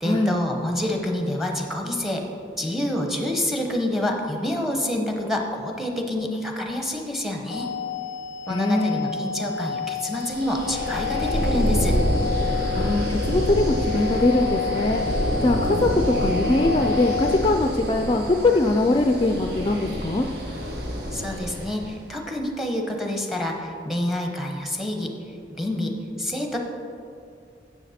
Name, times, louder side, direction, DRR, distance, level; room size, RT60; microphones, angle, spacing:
voice 1, 0.0-2.2 2.6-7.7 8.5-12.0 21.1-25.1 25.5-26.6, left 1 dB, ahead, 2 dB, 0.9 m, -27 dB
sound 1, 7.5-17.4, left 5 dB, 90° left, 0.4 m, -31 dB
voice 2, 8.5-9.1 12.7-15.0 15.4-15.9 16.2-20.3, left 2 dB, 25° left, 4 dB, 0.4 m, -22 dB
sound 2, 10.1-21.9, equal, 65° right, 1.3 m, -27 dB
sound 3, 10.4-17.3, left 5 dB, 35° right, 2.3 m, -35 dB
9.9 x 7.3 x 4.2 m, 2.4 s
head